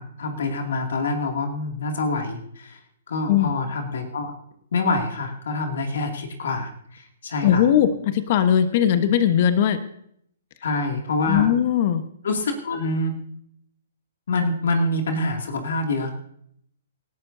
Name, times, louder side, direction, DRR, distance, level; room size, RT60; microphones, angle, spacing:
voice 1, 0.0-2.8 3.1-4.3 4.7-7.6 10.6-11.5 12.2-13.1 14.3-16.1, left 2 dB, 70° left, 3 dB, 2.4 m, -26 dB
voice 2, 7.4-9.8 11.3-12.0, left 9 dB, 45° left, 10 dB, 1.2 m, -19 dB
27.5 x 12.0 x 2.7 m, 0.69 s
hypercardioid pair, 125°, 0 cm